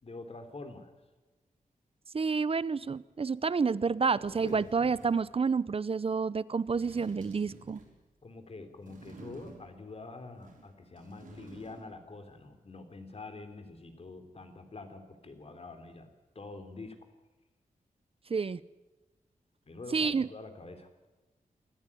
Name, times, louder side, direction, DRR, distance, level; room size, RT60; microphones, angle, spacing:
voice 1, 0.0-0.9 4.4-4.7 8.2-16.1 16.3-17.0 19.7-20.9, left 3 dB, 45° left, 8 dB, 3.3 m, -46 dB
voice 2, 2.1-7.8 18.3-18.6 19.9-20.3, right 5 dB, 40° right, 19 dB, 0.7 m, -29 dB
sound 1, 3.7-3.8 4.2-5.3 6.6-8.0 8.8-9.9 10.3-12.0 12.3-12.4, right 3 dB, 70° right, 5.9 m, -52 dB
26.0 x 14.0 x 9.8 m, 1.2 s
wide cardioid pair, 100°, 14 cm